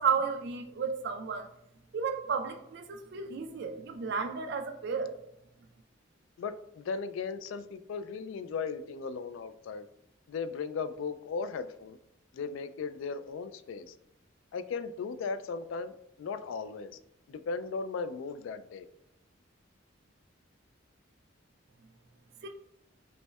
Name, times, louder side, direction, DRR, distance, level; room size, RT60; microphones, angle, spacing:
voice 1, 0.0-1.5 1.9-5.1 22.4-22.5, right 6 dB, 60° right, 6 dB, 0.4 m, -32 dB
voice 2, 6.4-9.9 10.3-12.0 12.3-13.9 14.5-16.9 17.3-18.9, left 5 dB, 80° left, 10 dB, 0.3 m, -37 dB
5.3 x 2.1 x 2.3 m, 0.81 s
head